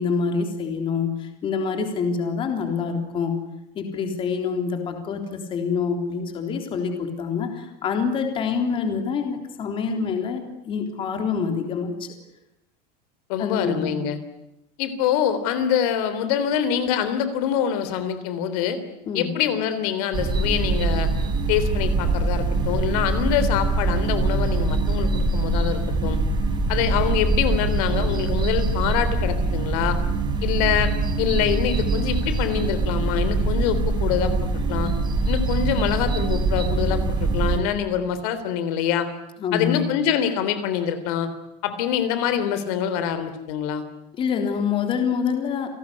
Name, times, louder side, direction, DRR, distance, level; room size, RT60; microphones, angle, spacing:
voice 1, 0.0-3.4 3.8-12.1 13.4-14.0 19.1-19.3 39.4-39.9 44.1-45.7, left 6 dB, 25° left, 5 dB, 3.6 m, -26 dB
voice 2, 13.3-14.2 14.8-18.8 19.1-21.1 21.5-26.2 26.7-30.0 30.4-30.9 31.2-34.3 34.7-34.9 35.3-39.1 39.5-41.3 41.6-43.8, left 9 dB, 60° left, 11 dB, 3.6 m, -25 dB
sound 1, 20.1-37.6, right 3 dB, 20° right, 4.3 m, -23 dB
29.5 x 18.5 x 10.0 m, 0.86 s
cardioid pair, 175°, 21 cm